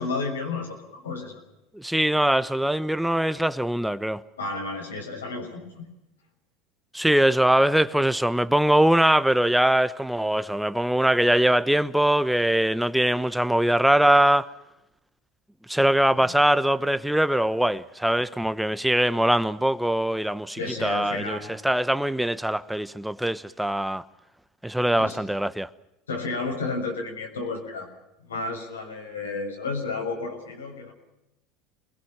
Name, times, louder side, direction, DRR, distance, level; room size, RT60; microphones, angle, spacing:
voice 1, 0.0-1.4 4.4-5.8 16.2-16.3 20.6-21.6 25.0-25.2 26.1-27.9 28.3-30.9, left 3 dB, 90° left, 6.5 m, -32 dB
voice 2, 1.7-4.2 6.9-14.5 15.7-24.0 24.6-25.7, right 1 dB, 5° right, 1.1 m, -22 dB
28.0 x 22.0 x 6.0 m
hypercardioid pair, 80°, 0 cm